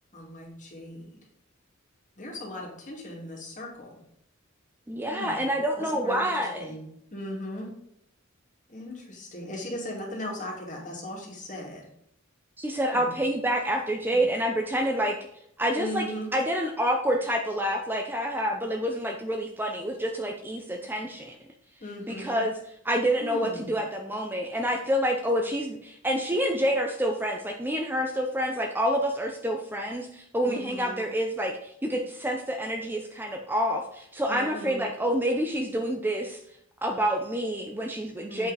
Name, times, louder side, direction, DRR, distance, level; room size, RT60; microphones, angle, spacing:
voice 1, 0.1-1.2 2.2-4.0 5.1-5.4 5.8-6.8 7.1-7.8 8.7-11.9 12.8-13.2 14.1-14.2 15.7-16.3 21.8-22.4 23.2-23.7 30.4-31.0 34.3-34.8 38.3-38.5, left 1 dB, 35° left, -1 dB, 2.5 m, -38 dB
voice 2, 4.9-6.7 12.6-15.2 15.6-16.0 16.3-21.3 22.1-22.5 22.8-36.4 36.8-38.5, equal, 10° right, 3 dB, 0.6 m, -28 dB
8.1 x 5.5 x 4.1 m, 0.74 s
head